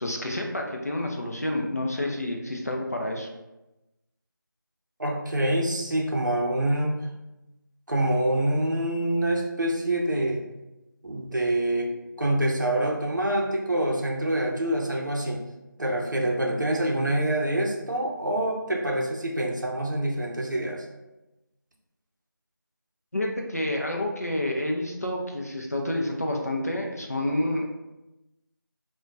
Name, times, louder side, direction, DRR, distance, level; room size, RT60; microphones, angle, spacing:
voice 1, 0.0-3.3 23.1-27.7, left 1 dB, 50° left, 1 dB, 0.4 m, -29 dB
voice 2, 5.0-7.0 7.9-10.4 11.0-11.9 12.2-15.4 15.8-20.9, right 1 dB, 60° right, 0 dB, 0.6 m, -26 dB
2.2 x 2.1 x 3.8 m, 0.99 s
figure-of-eight pair, 175°, 11 cm